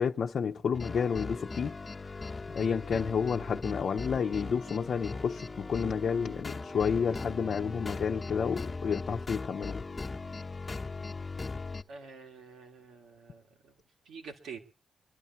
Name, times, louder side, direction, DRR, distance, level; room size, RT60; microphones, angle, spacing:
voice 1, 0.0-1.7 2.0-2.2 2.5-9.8, left 6 dB, 60° left, 0.8 m, -30 dB
sound 1, 0.7-11.8, left 3 dB, 25° left, 1.2 m, -39 dB
sound 2, 3.4-8.7, right 2 dB, 65° right, 2.0 m, -56 dB
voice 2, 11.9-13.7 14.0-14.6, right 5 dB, 90° right, 2.7 m, -47 dB
24.5 x 11.0 x 4.4 m
cardioid pair, 100°, 0 cm